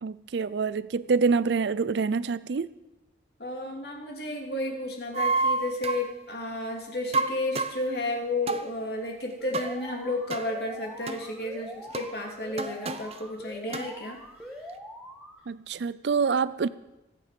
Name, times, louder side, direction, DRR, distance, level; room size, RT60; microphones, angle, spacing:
voice 1, 0.0-2.7 15.5-16.7, right 5 dB, 70° right, 17 dB, 0.5 m, -26 dB
voice 2, 3.4-14.2 14.6-14.7, left 2 dB, 60° left, 1 dB, 3.3 m, -32 dB
sound 1, 5.1-6.1 7.1-7.8 8.5-8.7 9.5-9.8 10.3-10.5 11.1-11.2 11.9-12.1 12.6-13.2 13.7-13.9, right 3 dB, 35° right, 0.8 m, -29 dB
Alarm, 9.4-15.4, equal, ahead, 1.6 m, -43 dB
25.5 x 9.1 x 5.3 m, 0.97 s
head